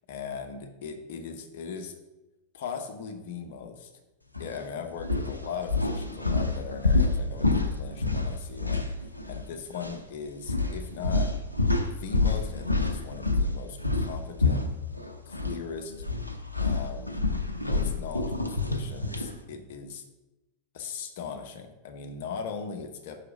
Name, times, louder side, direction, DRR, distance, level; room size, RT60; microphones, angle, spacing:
voice 1, 0.1-1.9 2.5-3.9 4.4-8.9 9.3-11.3 11.8-14.7 15.3-15.9 16.6-20.0 20.7-23.2, left 6 dB, 55° left, 6 dB, 0.9 m, -39 dB
sound 1, 4.3-4.6 5.0-9.5 9.7-10.0 10.5-15.6 15.9-19.3, left 3 dB, 85° left, 0.6 m, -28 dB
5.8 x 4.9 x 5.1 m, 1.0 s
figure-of-eight pair, 90°, 0 cm